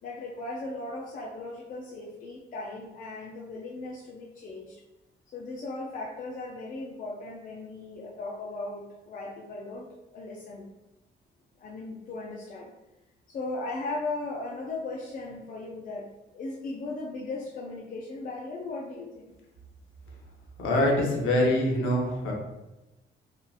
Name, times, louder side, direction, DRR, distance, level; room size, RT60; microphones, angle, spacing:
voice 1, 0.0-4.8 5.3-9.9 10.1-10.7 11.6-12.7 13.3-19.3, left 2 dB, 40° left, -3 dB, 0.4 m, -37 dB
voice 2, 20.6-22.3, left 1 dB, 85° left, -1 dB, 0.8 m, -24 dB
2.8 x 2.4 x 2.3 m, 0.98 s
cardioid pair, 90°, 20 cm